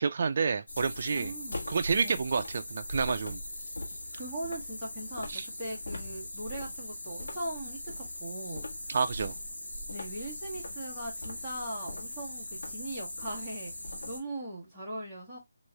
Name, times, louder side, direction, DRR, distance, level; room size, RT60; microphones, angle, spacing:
voice 1, 0.0-1.3 1.7-3.4 5.3-5.4 8.9-9.3, right 5 dB, 35° right, 0.4 m, -29 dB
sound 1, 0.7-14.2, left 1 dB, 80° left, 1.5 m, -40 dB
voice 2, 1.1-1.6 2.0-2.2 4.1-5.3 5.6-7.9 8.2-8.6 9.9-13.7 14.1-15.4, right 1 dB, ahead, 1.0 m, -39 dB
3.0 x 2.7 x 3.2 m
hypercardioid pair, 180°, 0 cm